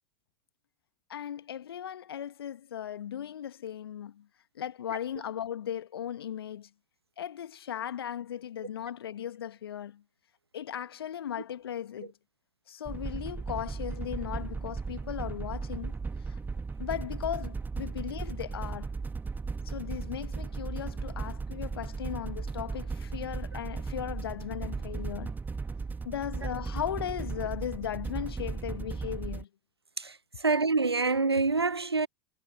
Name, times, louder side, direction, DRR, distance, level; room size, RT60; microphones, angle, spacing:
voice 1, 1.1-4.2 4.6-6.7 7.2-10.0 10.5-12.1 12.7-15.9 16.8-18.9 19.6-25.3 26.0-29.5, left 10 dB, 70° left, 1.5 m, -37 dB
sound 1, 12.9-29.4, right 4 dB, 15° right, 1.6 m, -36 dB
voice 2, 30.0-32.1, right 3 dB, 90° right, 0.8 m, -27 dB
figure-of-eight pair, 85°, 13 cm